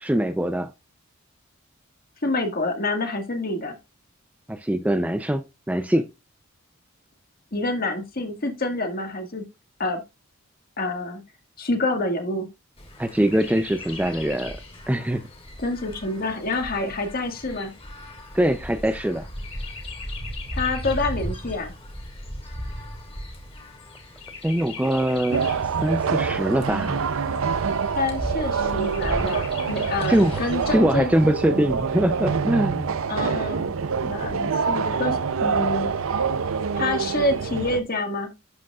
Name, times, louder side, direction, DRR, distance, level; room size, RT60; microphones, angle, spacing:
voice 1, 0.0-0.7 4.5-6.1 13.0-14.6 14.9-15.3 18.3-19.3 24.4-25.4 25.8-27.0 30.1-32.9, right 1 dB, 5° right, 0.4 m, -23 dB
voice 2, 2.2-3.8 7.5-9.4 9.8-10.0 10.8-11.2 11.6-12.5 15.6-17.7 20.5-21.7 28.0-31.1 33.1-33.7 34.0-35.9 36.8-38.3, left 2 dB, 45° left, 1.7 m, -27 dB
Chirp tweet, 12.8-30.8, left 1 dB, 30° left, 2.0 m, -37 dB
sound 1, 25.3-37.8, right 5 dB, 75° right, 0.5 m, -26 dB
11.5 x 5.0 x 2.3 m
head